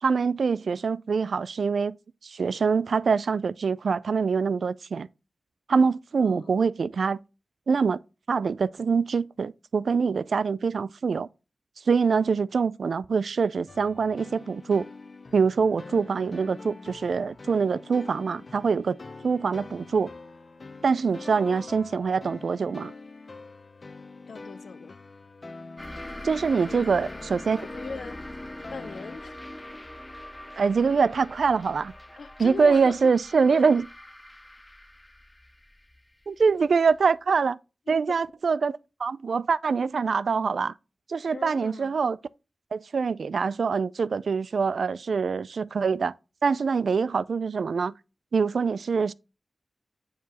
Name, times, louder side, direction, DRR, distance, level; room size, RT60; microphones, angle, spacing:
voice 1, 0.0-1.9 2.2-5.1 5.7-7.2 7.7-8.0 8.3-11.3 11.9-14.9 15.3-19.0 19.2-20.1 20.8-22.9 26.2-27.7 30.6-31.9 32.4-33.8 36.3-37.6 37.9-40.7 41.1-42.2 42.7-46.1 46.4-47.9 48.3-49.1, right 5 dB, 85° right, 0.3 m, -24 dB
voice 2, 6.2-6.6 21.3-21.9 24.3-25.0 26.7-27.2 27.6-28.2 28.5-29.4 32.2-33.1 33.5-33.7 37.9-38.0 41.3-41.9, left 5 dB, 85° left, 0.5 m, -41 dB
sound 1, 13.7-29.2, left 3 dB, 45° left, 0.7 m, -45 dB
sound 2, 25.8-37.0, left 1 dB, 15° left, 0.3 m, -43 dB
9.2 x 4.6 x 2.8 m
wide cardioid pair, 110°, 0 cm